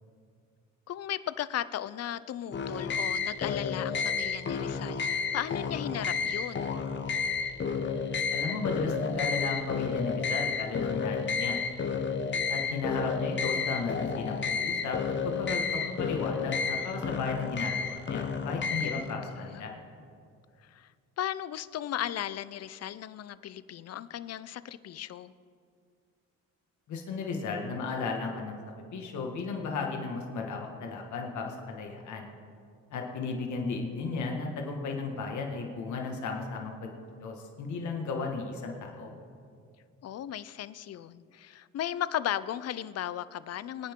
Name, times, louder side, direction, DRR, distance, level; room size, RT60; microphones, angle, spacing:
voice 1, 0.9-6.8 18.6-19.7 20.6-20.9 21.2-25.3 40.0-43.9, left 11 dB, 55° left, 16 dB, 0.6 m, -36 dB
sound 1, 2.5-19.1, left 5 dB, 40° left, 1.0 m, -31 dB
voice 2, 8.3-11.6 12.5-15.0 15.2-19.7 26.9-28.6 28.9-32.3 32.9-36.9 37.2-39.1, left 4 dB, 70° left, 2 dB, 1.9 m, -34 dB
24.0 x 9.5 x 3.8 m, 2.3 s
cardioid pair, 90°, 30 cm